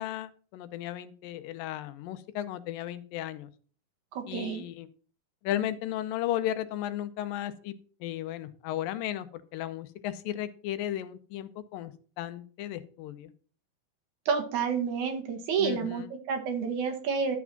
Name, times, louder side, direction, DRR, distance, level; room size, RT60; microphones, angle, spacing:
voice 1, 0.0-3.5 4.3-4.9 5.4-7.7 8.0-13.3 15.6-16.1, left 12 dB, 85° left, 12 dB, 2.4 m, -35 dB
voice 2, 4.1-4.6 14.3-17.4, right 6 dB, 65° right, 5 dB, 2.7 m, -29 dB
12.0 x 4.8 x 5.8 m, 0.42 s
omnidirectional pair, 3.9 m